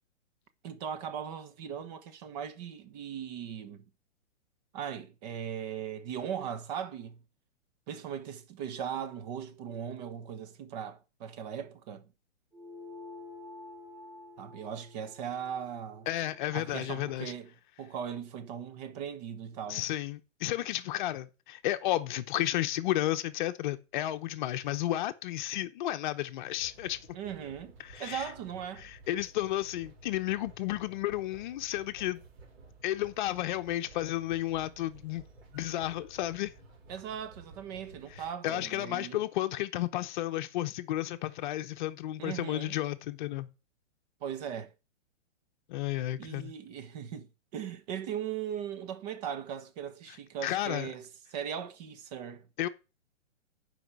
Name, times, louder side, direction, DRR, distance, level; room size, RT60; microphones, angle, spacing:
voice 1, 0.6-3.8 4.7-7.2 7.9-12.0 14.4-16.1 16.5-17.5 17.8-19.8 27.1-28.9 36.9-39.2 42.2-42.8 44.2-44.7 46.2-52.5, right 8 dB, 35° right, 1.2 m, -39 dB
sound 1, 12.5-17.3, left 3 dB, ahead, 3.8 m, -50 dB
voice 2, 16.1-17.3 19.7-27.0 27.8-28.3 28.8-32.2 32.8-35.2 35.5-36.5 38.1-43.5 45.7-46.5 50.4-50.9 52.6-52.7, left 14 dB, 40° left, 0.9 m, -32 dB
sound 2, 26.5-38.3, right 3 dB, 55° right, 3.3 m, -54 dB
9.3 x 5.1 x 6.8 m
hypercardioid pair, 145°, 37 cm